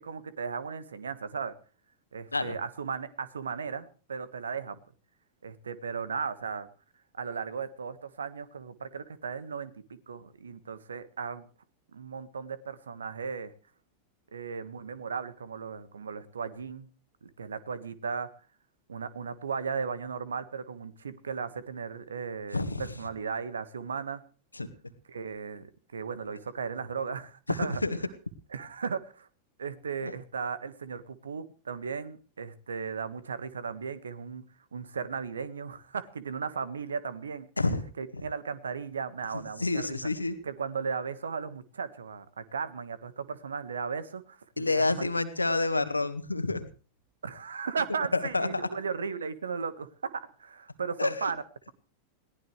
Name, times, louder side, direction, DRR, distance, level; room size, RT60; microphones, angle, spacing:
voice 1, 0.0-1.5 2.1-4.8 5.4-6.7 7.1-11.5 11.9-13.5 14.3-16.9 17.2-18.3 18.9-24.2 25.1-27.8 28.5-29.3 29.6-34.4 34.7-37.5 38.0-40.0 40.4-45.1 47.2-51.4, right 5 dB, 70° right, 15 dB, 1.6 m, -36 dB
voice 2, 22.5-22.8 24.5-24.7 27.5-28.0 30.0-30.1 37.6-37.8 38.1-38.2 39.3-40.3 44.6-46.7 48.1-48.5 51.0-51.3, left 3 dB, 80° left, 11 dB, 1.8 m, -28 dB
21.5 x 18.0 x 3.3 m, 0.38 s
figure-of-eight pair, 90°, 0 cm